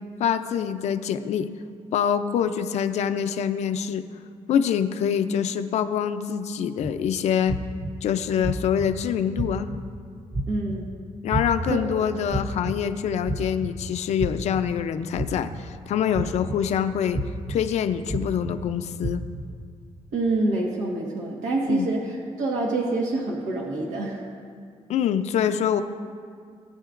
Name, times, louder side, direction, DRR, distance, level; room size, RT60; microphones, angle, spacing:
voice 1, 0.2-1.5 1.9-4.1 4.5-7.6 8.0-9.7 11.2-17.2 17.5-19.2 21.7-21.9 24.9-25.8, left 8 dB, 70° left, 9 dB, 0.5 m, -25 dB
sound 1, 6.8-6.9 7.5-7.9 8.4-8.9 9.4-9.8 10.3-10.8 11.3-11.7 12.3-12.7 13.3-13.7 14.2-14.6 15.2-15.6 16.1-16.6 17.1-17.6 18.1-18.5 19.0-19.4, right 2 dB, 15° right, 0.5 m, -29 dB
voice 2, 10.5-10.9 11.7-12.0 20.1-24.2, right 2 dB, 90° right, -2 dB, 1.6 m, -26 dB
19.0 x 9.8 x 2.5 m, 2.2 s
cardioid pair, 145°, 12 cm